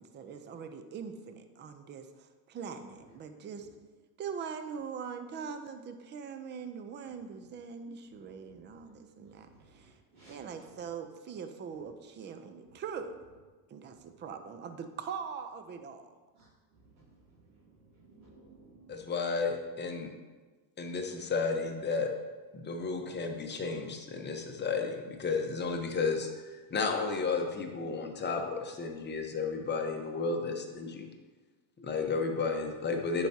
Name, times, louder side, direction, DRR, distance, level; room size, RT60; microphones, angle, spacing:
voice 1, 0.0-3.7 4.2-9.9 10.3-13.2 13.7-16.1, right 6 dB, 25° right, 8 dB, 0.4 m, -42 dB
voice 2, 9.2-10.8 12.6-12.8 13.9-14.2 16.3-19.0, right 3 dB, 75° right, -10 dB, 2.1 m, -60 dB
voice 3, 18.9-20.1 20.8-22.1 22.5-31.0 31.8-33.3, left 4 dB, 20° left, 3 dB, 0.8 m, -33 dB
10.5 x 4.7 x 2.7 m, 1.3 s
supercardioid pair, 110°, 50 cm